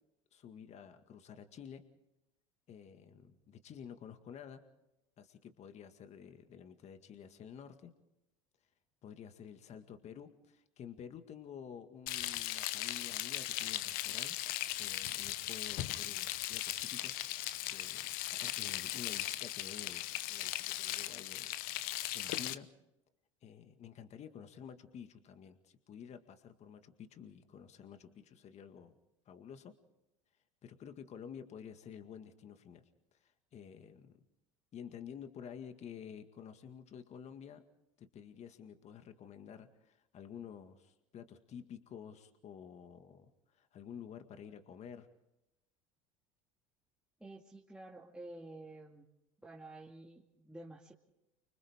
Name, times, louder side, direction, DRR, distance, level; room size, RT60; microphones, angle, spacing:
voice 1, 0.3-1.8 2.7-4.6 5.2-7.9 9.0-14.4 14.8-17.2 17.7-22.7 23.4-29.0 29.3-29.7 30.6-32.8 33.1-34.2 34.7-37.6 38.0-45.1, left 8 dB, 40° left, 8 dB, 1.9 m, -51 dB
Frying (food), 12.1-22.5, left 15 dB, 60° left, 0.9 m, -38 dB
voice 2, 47.2-49.0 49.4-50.9, right 2 dB, 5° right, -4 dB, 2.3 m, -50 dB
29.5 x 25.5 x 3.7 m, 0.88 s
hypercardioid pair, 85°, 17 cm